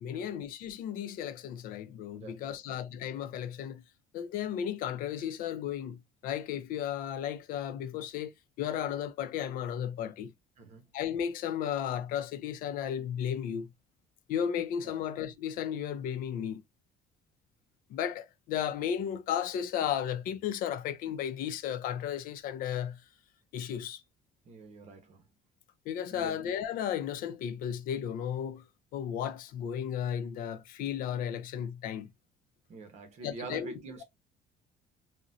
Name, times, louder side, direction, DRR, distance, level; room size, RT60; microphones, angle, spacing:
voice 1, 0.0-3.8 4.1-8.3 8.6-10.3 10.9-13.7 14.3-16.6 17.9-23.0 23.5-24.0 25.9-28.6 28.9-32.1 33.2-33.7, left 9 dB, 70° left, 0.5 m, -34 dB
voice 2, 2.1-2.8 10.6-10.9 14.8-15.0 24.5-25.3 26.1-26.4 32.7-34.0, right 3 dB, 50° right, 0.9 m, -45 dB
3.8 x 2.1 x 2.4 m
cardioid pair, 140°, 15 cm